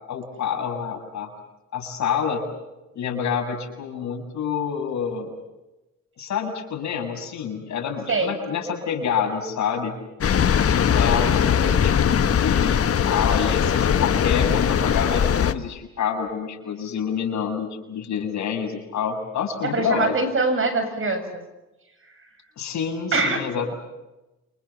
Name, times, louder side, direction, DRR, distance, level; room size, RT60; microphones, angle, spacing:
voice 1, 0.1-1.3 1.7-2.4 3.0-5.3 6.2-10.0 10.7-20.1 22.6-23.7, left 7 dB, 65° left, 3 dB, 7.0 m, -27 dB
sound 1, 10.2-15.5, left 8 dB, 50° left, 1.4 m, -20 dB
voice 2, 19.6-21.2 23.1-23.4, right 3 dB, 45° right, 8 dB, 7.2 m, -23 dB
28.5 x 26.5 x 7.2 m, 1.0 s
cardioid pair, 90°, 30 cm